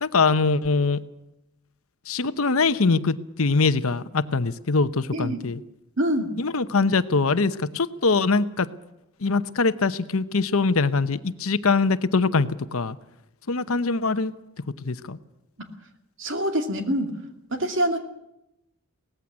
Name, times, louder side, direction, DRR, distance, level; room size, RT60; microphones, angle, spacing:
voice 1, 0.0-1.0 2.1-5.6 6.4-8.7 9.2-13.0 13.5-14.3 14.8-15.2, left 4 dB, 75° left, 13 dB, 0.9 m, -23 dB
voice 2, 6.0-6.3 16.2-17.1 17.5-18.0, equal, 55° right, 5 dB, 2.5 m, -25 dB
18.0 x 15.0 x 9.6 m, 0.86 s
head